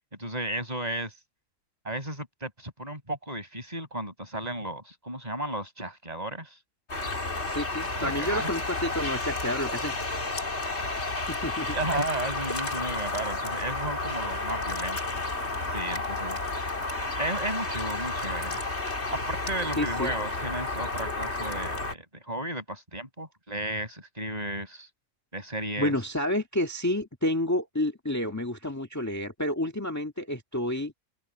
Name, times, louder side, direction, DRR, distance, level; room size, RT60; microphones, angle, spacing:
voice 1, 0.2-1.1 1.8-6.6 8.0-8.5 11.7-15.4 15.7-16.4 17.2-18.6 19.1-24.9 25.3-25.9, right 1 dB, 25° right, 6.4 m, -34 dB
sound 1, 6.9-21.9, left 2 dB, 45° left, 3.3 m, -31 dB
voice 2, 7.5-9.9 11.3-11.8 19.8-20.1 25.8-30.9, left 1 dB, 10° left, 1.7 m, -29 dB
open air
omnidirectional pair, 1.6 m